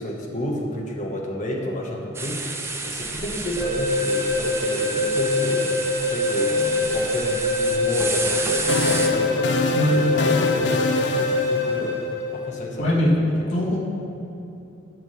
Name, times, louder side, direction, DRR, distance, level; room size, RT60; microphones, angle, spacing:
voice 1, 0.0-9.5 9.8-12.0 12.3-13.6, equal, 35° left, 0 dB, 1.1 m, -31 dB
sound 1, 2.1-9.1, right 3 dB, 15° right, 0.5 m, -30 dB
sound 2, 3.6-12.5, left 2 dB, 30° right, 1.1 m, -24 dB
sound 3, 8.3-12.5, left 4 dB, 60° left, 0.4 m, -26 dB
voice 2, 12.8-13.1 13.5-13.8, left 1 dB, 75° left, -3 dB, 1.8 m, -21 dB
7.9 x 6.0 x 7.0 m, 2.8 s
head